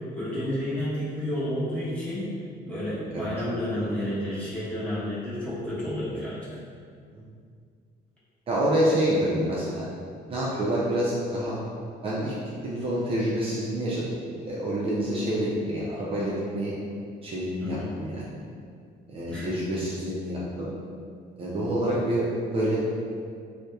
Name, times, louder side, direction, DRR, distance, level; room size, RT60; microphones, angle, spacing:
voice 1, 0.1-2.3 2.6-6.4 17.6-17.9 19.3-19.5, left 1 dB, 10° left, -11 dB, 0.9 m, -30 dB
voice 2, 8.5-9.9 10.3-11.6 12.0-12.3 12.6-14.0 14.3-16.7 17.2-18.3 19.1-20.7 21.4-22.8, right 1 dB, 35° right, -6 dB, 0.4 m, -27 dB
2.7 x 2.1 x 2.3 m, 2.2 s
cardioid pair, 110°, 17 cm